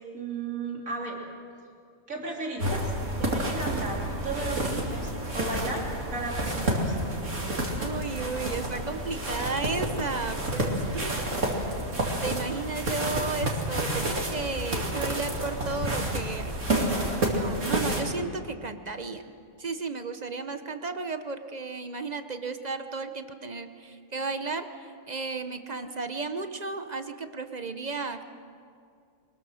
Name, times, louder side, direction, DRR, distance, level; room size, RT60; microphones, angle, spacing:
voice 1, 0.1-1.2 2.1-2.9 3.2-7.0 15.1-15.2, right 3 dB, 80° right, -1 dB, 3.5 m, -35 dB
sound 1, 2.6-18.0, right 1 dB, 65° right, 3.0 m, -30 dB
voice 2, 7.8-11.2 12.2-19.3 19.6-28.2, right 4 dB, 35° right, 9 dB, 0.8 m, -34 dB
23.5 x 20.5 x 6.3 m, 2.3 s
omnidirectional pair, 1.4 m